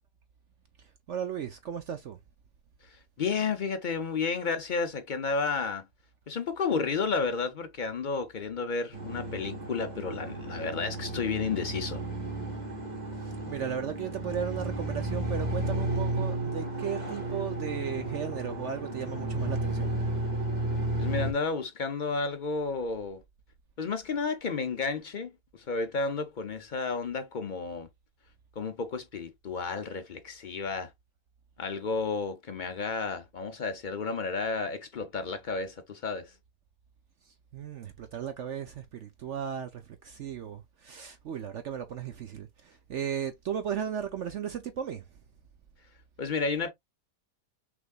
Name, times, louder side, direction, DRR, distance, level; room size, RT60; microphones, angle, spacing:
voice 1, 0.8-2.2 13.2-19.9 37.2-45.0, right 8 dB, 60° right, 0.8 m, -36 dB
voice 2, 2.8-5.9 6.3-12.0 21.0-23.2 23.8-27.9 28.6-30.9 31.6-36.3 46.2-46.7, left 4 dB, 80° left, 0.4 m, -32 dB
sound 1, 8.9-21.3, right 1 dB, 25° right, 2.0 m, -33 dB
6.0 x 3.4 x 2.4 m
omnidirectional pair, 1.8 m